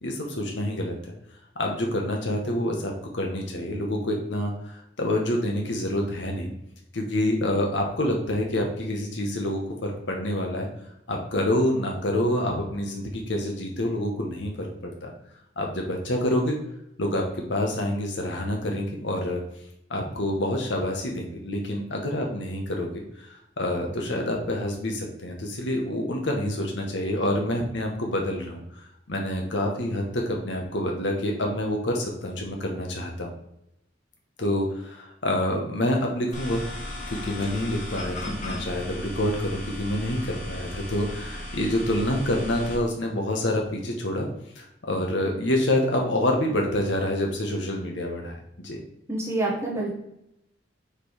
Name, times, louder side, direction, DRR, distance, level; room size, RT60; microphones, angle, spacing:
voice 1, 0.0-1.1 1.6-6.5 6.9-10.7 11.1-15.1 15.6-16.5 17.0-19.4 19.9-33.3 34.4-36.6 37.1-44.3 44.5-48.8, left 1 dB, 70° left, 1 dB, 1.0 m, -27 dB
sound 1, 36.3-42.8, left 1 dB, 40° left, 1.7 m, -36 dB
voice 2, 49.1-49.9, right 2 dB, 15° right, -4 dB, 1.3 m, -27 dB
5.2 x 4.4 x 4.8 m, 0.80 s
head